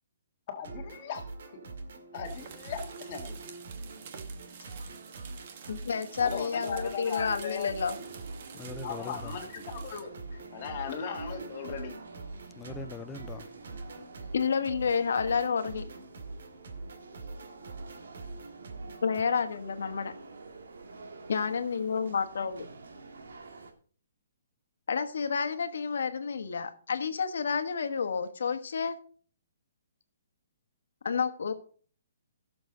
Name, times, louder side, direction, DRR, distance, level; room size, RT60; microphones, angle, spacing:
voice 1, 0.5-1.6 2.1-3.4 6.2-7.7 8.8-11.9, left 6 dB, 25° left, 1.8 m, -38 dB
sound 1, 0.6-19.2, right 3 dB, 55° right, 2.1 m, -44 dB
sound 2, 2.2-10.0, right 6 dB, 35° right, 1.1 m, -49 dB
voice 2, 5.7-8.0 14.3-15.9 19.0-20.1 21.3-22.6 24.9-28.9 31.0-31.5, left 6 dB, 65° left, 1.4 m, -30 dB
sound 3, 7.8-23.7, right 3 dB, 90° right, 2.1 m, -49 dB
voice 3, 8.5-9.4 12.5-13.7, left 4 dB, 5° left, 0.5 m, -42 dB
16.5 x 7.0 x 3.8 m
hypercardioid pair, 180°, 0 cm